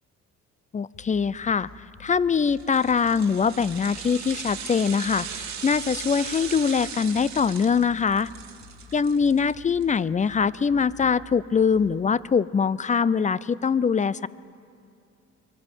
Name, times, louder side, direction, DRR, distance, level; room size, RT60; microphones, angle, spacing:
voice 1, 0.7-1.7 2.0-8.3 8.9-14.3, left 6 dB, 25° left, 20 dB, 0.4 m, -23 dB
sound 1, 0.9-12.1, left 6 dB, 70° left, 7.3 m, -50 dB
sound 2, 2.5-9.8 10.2-10.3, right 8 dB, 65° right, 2.2 m, -38 dB
23.0 x 16.0 x 8.3 m, 2.6 s
cardioid pair, 90°, 30 cm